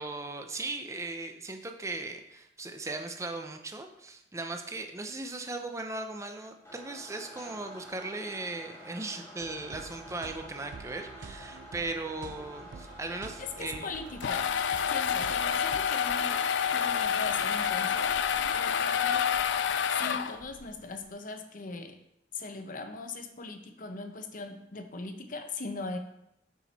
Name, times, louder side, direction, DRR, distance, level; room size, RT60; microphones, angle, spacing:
voice 1, 0.0-13.9, right 2 dB, 15° right, 5 dB, 0.6 m, -38 dB
sound 1, 6.6-19.2, equal, 15° left, 2.0 m, -49 dB
sound 2, 9.4-15.9, right 4 dB, 75° right, 0.4 m, -48 dB
voice 2, 13.4-14.5 14.9-16.4 16.7-18.1 18.5-19.3 19.9-22.0 22.3-26.0, left 3 dB, 50° left, 7 dB, 0.8 m, -40 dB
sound 3, 13.9-20.6, left 8 dB, 85° left, 0.4 m, -28 dB
7.2 x 6.0 x 4.1 m, 0.81 s
head